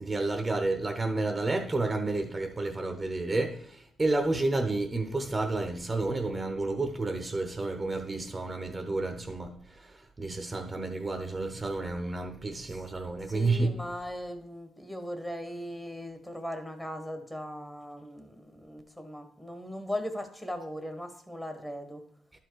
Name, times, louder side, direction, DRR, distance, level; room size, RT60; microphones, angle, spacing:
voice 1, 0.0-13.7, right 2 dB, 20° right, 0.9 m, -30 dB
voice 2, 13.3-22.0, equal, 10° left, 1.3 m, -38 dB
11.5 x 4.6 x 4.7 m
cardioid pair, 90°, 0 cm